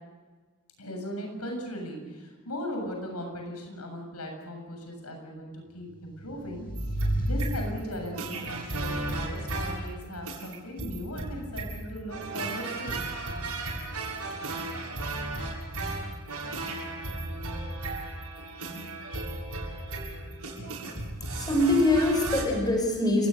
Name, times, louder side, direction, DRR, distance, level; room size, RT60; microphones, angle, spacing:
voice 1, 0.8-6.7 6.9-13.0, equal, 85° left, 3 dB, 7.3 m, -38 dB
sound 1, 6.0-8.3, right 1 dB, 40° left, 7.9 m, -31 dB
sound 2, 6.8-22.4, right 2 dB, 85° right, 7.5 m, -35 dB
voice 2, 21.2-23.3, left 1 dB, 20° left, 2 dB, 6.1 m, -24 dB
29.5 x 19.0 x 6.9 m, 1.4 s
head